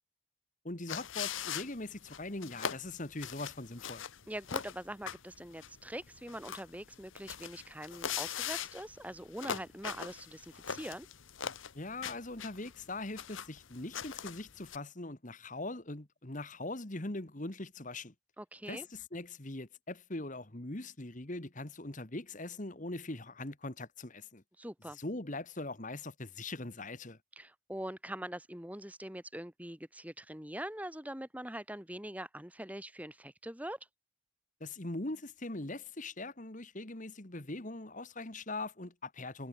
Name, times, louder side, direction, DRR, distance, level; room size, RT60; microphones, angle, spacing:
voice 1, 0.6-4.1 11.7-18.1 18.7-24.4 25.0-27.2 34.6-39.5, left 2 dB, 35° left, 1.7 m, -41 dB
sound 1, 0.9-14.8, left 8 dB, 70° left, 1.0 m, -41 dB
voice 2, 4.3-11.1 18.4-18.9 24.6-25.0 27.4-33.8, right 1 dB, 5° right, 1.8 m, -43 dB
head